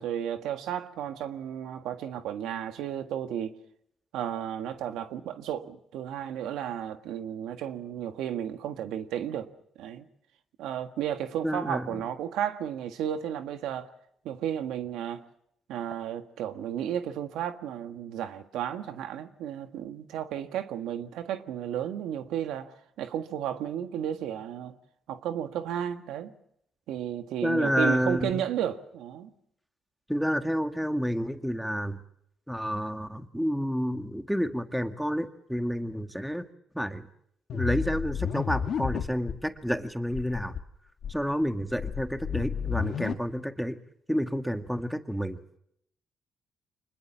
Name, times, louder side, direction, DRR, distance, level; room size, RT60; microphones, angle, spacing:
voice 1, 0.0-3.5 4.1-9.5 9.8-10.1 10.6-13.9 14.2-15.2 15.7-24.7 25.1-26.3 26.9-29.3, right 10 dB, 90° right, 1.6 m, -33 dB
voice 2, 11.4-11.9 27.4-28.4 30.1-32.0 32.5-36.5 36.7-37.1 37.5-40.5 41.1-43.8 44.1-45.4, equal, ahead, 1.8 m, -29 dB
sound 1, 37.5-39.4 39.7-39.8 40.1-40.6 41.0-43.1, left 7 dB, 65° left, 1.9 m, -32 dB
25.5 x 21.0 x 7.3 m
cardioid pair, 90°, 0 cm